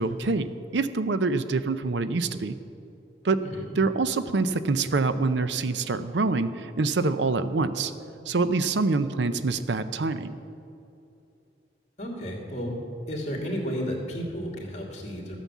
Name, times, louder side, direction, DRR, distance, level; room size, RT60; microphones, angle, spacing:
voice 1, 0.0-2.6 3.2-3.4 3.7-7.9 8.3-10.4, right 3 dB, 75° right, 12 dB, 0.6 m, -26 dB
voice 2, 12.0-12.7 13.1-15.4, equal, 40° left, 0 dB, 2.8 m, -32 dB
14.0 x 9.2 x 7.3 m, 2.7 s
head